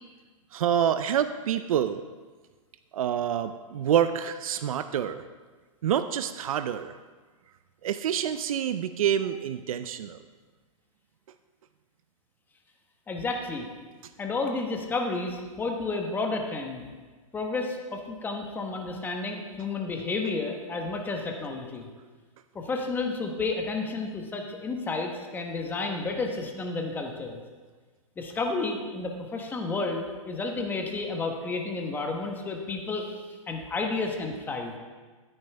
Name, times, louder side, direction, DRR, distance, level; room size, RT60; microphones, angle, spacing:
voice 1, 0.5-2.0 2.9-5.2 5.8-6.9 7.8-10.2, right 9 dB, 85° right, 11 dB, 0.5 m, -27 dB
voice 2, 13.1-13.7 14.2-16.8 17.3-21.9 22.5-27.4 28.2-33.1 33.5-34.8, left 3 dB, 10° left, 2 dB, 1.0 m, -31 dB
13.5 x 8.9 x 3.4 m, 1.4 s
hypercardioid pair, 150°, 17 cm